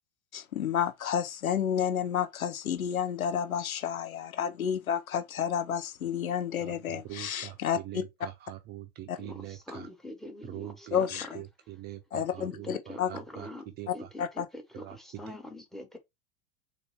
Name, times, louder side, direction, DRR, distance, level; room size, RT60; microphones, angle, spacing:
voice 1, 0.3-8.0 9.1-9.2 10.9-11.4 12.1-13.1 13.9-14.5, left 8 dB, 75° left, 0.7 m, -31 dB
voice 2, 6.6-9.9 10.4-14.1 14.7-15.4, right 14 dB, 25° right, 0.4 m, -44 dB
voice 3, 9.2-11.1 12.4-13.6 13.9-16.0, left 1 dB, ahead, 0.8 m, -44 dB
3.9 x 2.5 x 3.4 m
figure-of-eight pair, 80°, 42 cm